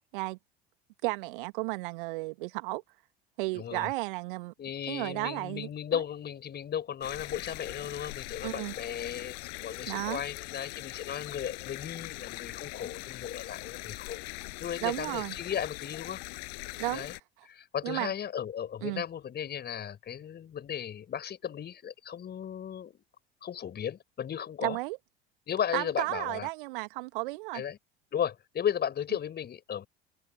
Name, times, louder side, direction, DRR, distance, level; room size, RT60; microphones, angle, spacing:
voice 1, 1.0-2.8 3.4-4.5 4.9-6.0 8.4-8.7 9.9-10.2 14.8-15.4 16.8-17.0 17.8-18.1 18.8-19.0 24.6-25.0 25.7-27.6, right 24 dB, 60° right, 2.1 m, -33 dB
voice 2, 3.5-3.9 4.6-14.2 14.6-16.2 16.9-17.1 17.5-23.0 23.4-24.8 25.5-26.5 27.5-27.8 28.1-29.9, left 9 dB, 35° left, 6.2 m, -35 dB
sound 1, 7.0-17.2, left 40 dB or more, 55° left, 7.5 m, -42 dB
figure-of-eight pair, 70°, 30 cm